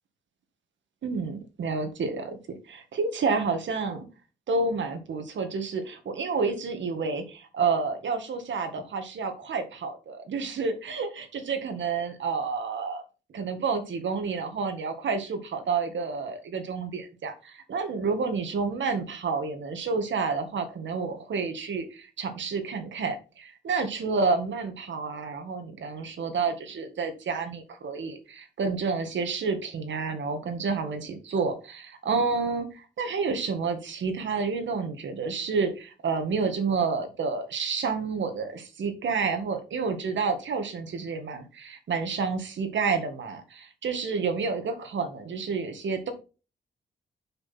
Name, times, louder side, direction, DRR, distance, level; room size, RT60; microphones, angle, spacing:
voice 1, 1.0-4.1 4.5-13.0 13.3-46.1, right 4 dB, 70° right, 7 dB, 1.9 m, -29 dB
6.6 x 6.2 x 5.8 m, 0.34 s
wide cardioid pair, 125°, 20 cm